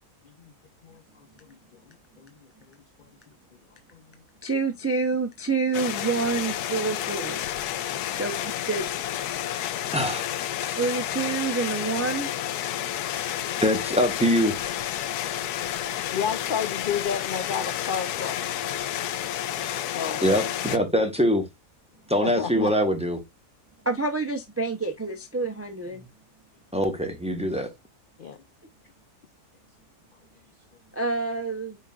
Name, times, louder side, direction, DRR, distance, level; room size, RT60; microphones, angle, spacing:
voice 1, 0.8-1.6 2.2-2.5 3.9-4.0 16.1-18.4 19.9-20.2 22.2-22.7 28.2-28.4, left 7 dB, 70° left, 0.5 m, -31 dB
voice 2, 4.4-7.4 8.1-8.9 10.8-12.3 22.5-22.7 23.8-26.0 30.9-31.8, right 4 dB, 25° right, 0.3 m, -28 dB
sound 1, 5.7-20.8, left 11 dB, 85° left, 1.1 m, -30 dB
voice 3, 9.9-10.2 10.7-10.8 13.6-14.6 20.2-21.4 22.1-23.2 26.7-27.7, equal, 5° right, 1.0 m, -23 dB
8.7 x 4.6 x 2.4 m
omnidirectional pair, 1.6 m